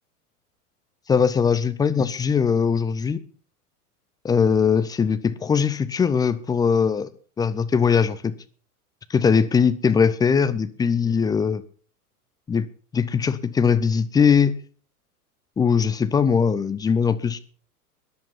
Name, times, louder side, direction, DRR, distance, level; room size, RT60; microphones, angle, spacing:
voice 1, 1.1-3.2 4.2-7.1 7.4-8.3 9.1-11.6 12.5-12.7 12.9-14.5 15.6-17.4, left 6 dB, 10° left, 12 dB, 0.6 m, -20 dB
13.5 x 10.5 x 6.0 m, 0.42 s
figure-of-eight pair, 90°, 46 cm